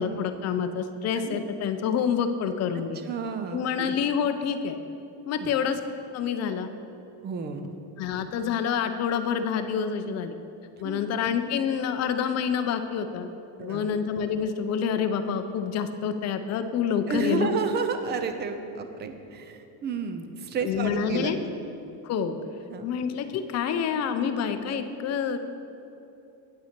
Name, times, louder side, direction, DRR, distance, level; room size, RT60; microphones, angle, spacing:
voice 1, 0.0-3.0 3.5-4.8 5.3-5.8 6.1-6.7 8.0-10.4 10.8-13.3 13.6-17.5 20.6-21.4 22.0-22.4 22.8-25.4, left 7 dB, 35° left, 8 dB, 0.5 m, -27 dB
voice 2, 3.0-4.0 5.4-5.5 7.2-7.8 10.8-11.0 13.6-14.0 17.1-21.3 22.7-22.8, right 5 dB, 25° right, 8 dB, 0.3 m, -31 dB
8.5 x 8.4 x 4.4 m, 2.9 s
cardioid pair, 150°, 48 cm